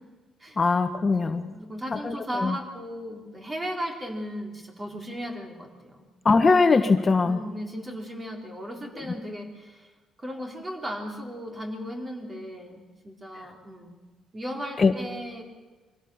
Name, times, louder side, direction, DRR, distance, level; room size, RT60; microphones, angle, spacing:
voice 1, 0.6-1.5 1.9-2.5 6.2-7.4 14.8-14.9, left 4 dB, 35° left, 7 dB, 1.2 m, -21 dB
voice 2, 1.1-6.1 7.2-9.9 10.2-13.9 14.3-15.4, equal, 25° right, 2 dB, 4.1 m, -36 dB
24.0 x 16.5 x 7.2 m, 1.3 s
cardioid pair, 90°, 0 cm